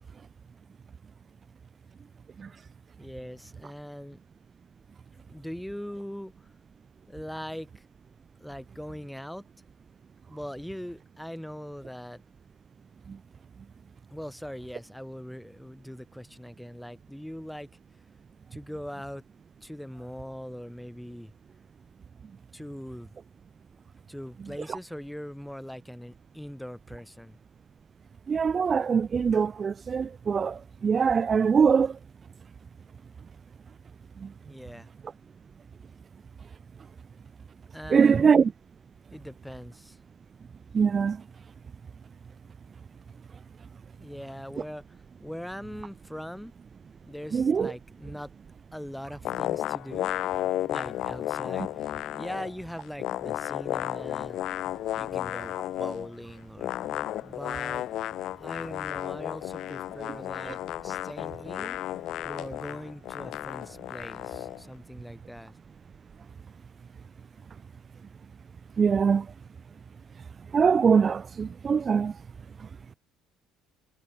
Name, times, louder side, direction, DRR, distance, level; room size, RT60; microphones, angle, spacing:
voice 1, 3.0-4.2 5.1-6.5 7.1-7.9 8.4-9.5 10.3-12.2 14.1-17.7 18.5-19.2 19.6-21.3 22.5-23.1 24.1-27.4 34.5-34.9 37.7-38.3 39.1-40.0 44.0-46.5 47.0-48.3 48.7-50.1 50.7-54.6 54.9-56.8 57.2-57.9 58.4-65.6, equal, ahead, 5.4 m, -41 dB
voice 2, 28.3-32.0 34.2-34.3 37.9-38.5 40.7-41.2 47.3-47.7 68.8-69.3 70.5-72.1, right 6 dB, 30° right, 0.4 m, -23 dB
sound 1, 49.3-52.5 52.8-56.1 56.6-64.6, left 13 dB, 60° left, 1.1 m, -33 dB
cardioid pair, 110°, 0 cm